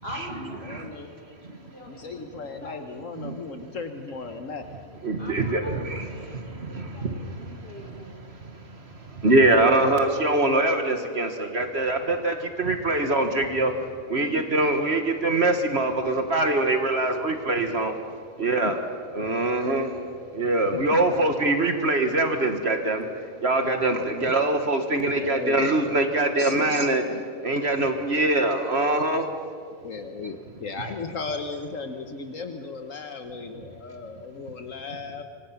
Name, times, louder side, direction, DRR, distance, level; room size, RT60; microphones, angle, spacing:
voice 1, 0.0-3.2 5.2-5.7 6.1-8.2 14.1-14.7, left 1 dB, 45° left, 0 dB, 4.4 m, -44 dB
voice 2, 0.6-1.1 1.9-4.7 20.7-20.8 24.0-24.3 25.1-27.2 29.8-35.2, left 4 dB, 70° left, 6 dB, 1.5 m, -36 dB
voice 3, 5.0-8.0 8.4-13.8 14.1-18.0 18.4-18.8 19.1-19.9 20.3-27.0 27.4-29.3, right 2 dB, 50° right, 5 dB, 1.8 m, -24 dB
26.0 x 25.0 x 5.8 m, 2.1 s
omnidirectional pair, 1.4 m